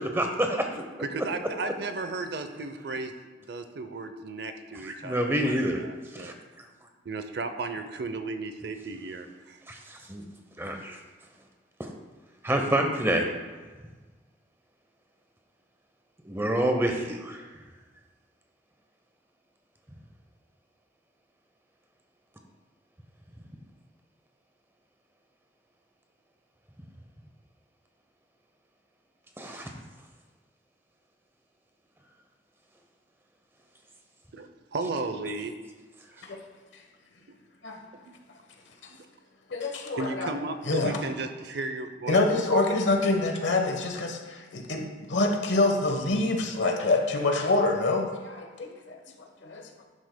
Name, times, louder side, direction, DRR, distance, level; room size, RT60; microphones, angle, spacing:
voice 1, 0.0-0.8 5.0-5.8 6.1-6.3 9.7-10.2 10.6-11.0 11.8-11.9 12.4-13.3 16.2-17.4 29.4-29.7, right 1 dB, 15° right, 3 dB, 0.8 m, -27 dB
voice 2, 1.0-3.1 3.4-6.4 7.0-9.6 34.3-35.5 36.2-36.4 38.0-38.1 40.0-42.2, right 3 dB, 60° right, 8 dB, 0.6 m, -35 dB
voice 3, 39.5-40.3 40.7-41.0 42.1-49.0 49.4-49.6, left 2 dB, 75° left, 3 dB, 1.1 m, -26 dB
11.5 x 8.2 x 2.2 m, 1.4 s
head